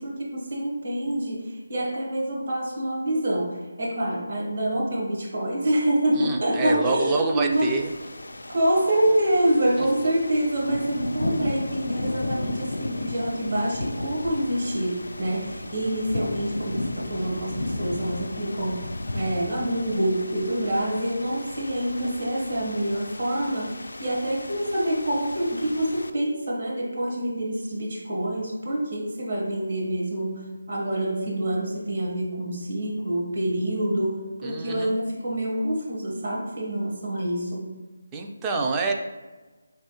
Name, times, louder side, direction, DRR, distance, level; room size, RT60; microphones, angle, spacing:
voice 1, 0.0-7.7 8.5-18.9 19.1-37.7, right 1 dB, 55° right, -2 dB, 1.3 m, -26 dB
voice 2, 6.2-7.9 34.4-34.9 38.1-38.9, right 3 dB, 15° right, 1 dB, 0.3 m, -27 dB
sound 1, 7.5-26.1, left 1 dB, 75° left, 0.3 m, -34 dB
4.5 x 3.2 x 2.9 m, 1.3 s
figure-of-eight pair, 160°, 0 cm